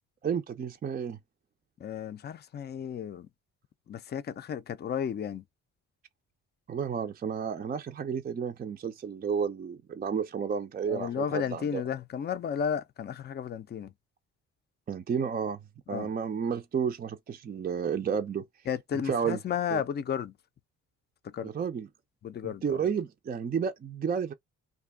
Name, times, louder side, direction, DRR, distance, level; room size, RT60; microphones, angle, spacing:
voice 1, 0.2-1.2 6.7-11.8 14.9-15.6 15.9-18.4 19.1-19.4 19.7-19.8 21.4-21.9 22.4-24.3, right 7 dB, 30° right, 0.4 m, -31 dB
voice 2, 1.8-3.3 3.9-5.4 10.9-13.9 15.9-16.1 18.7-20.3 21.2-21.5 22.2-22.8, left 8 dB, 35° left, 0.4 m, -33 dB
2.5 x 2.2 x 3.5 m
cardioid pair, 90°, 30 cm